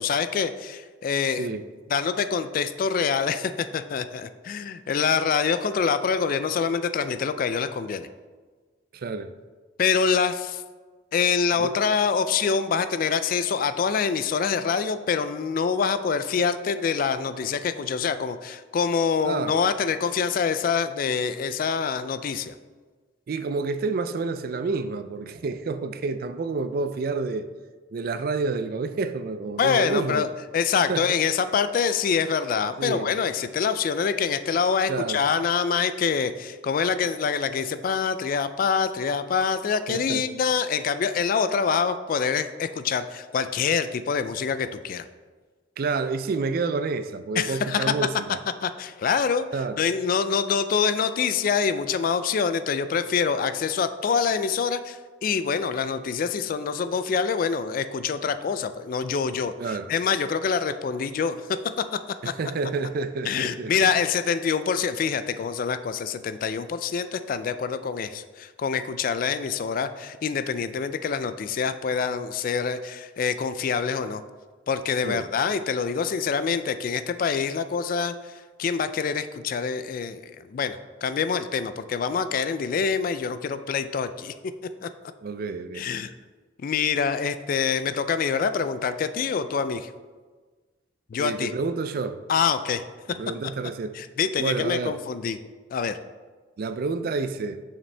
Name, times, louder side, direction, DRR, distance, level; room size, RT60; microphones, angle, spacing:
voice 1, 0.0-1.5 1.9-8.1 9.8-10.6 11.1-22.5 29.6-30.3 30.5-45.0 47.4-47.9 48.6-49.4 49.8-61.4 61.9-62.0 62.2-62.3 63.3-74.2 74.7-78.1 78.6-84.3 84.8-84.9 85.8-86.1 86.6-89.9 91.1-91.5 92.3-92.8 93.9-95.4 95.7-96.0, left 6 dB, 45° left, 12 dB, 0.3 m, -25 dB
voice 2, 8.9-9.3 11.6-11.7 19.2-19.5 23.3-27.5 27.9-30.3 30.9-31.1 32.8-33.1 34.9-35.2 39.9-40.3 45.8-48.4 49.5-49.8 59.6-59.9 62.2-63.7 75.0-75.3 85.2-85.9 91.2-92.2 93.1-94.0 94.4-95.0 96.6-97.6, right 4 dB, 50° right, 11 dB, 0.4 m, -29 dB
6.8 x 5.8 x 3.3 m, 1.4 s
head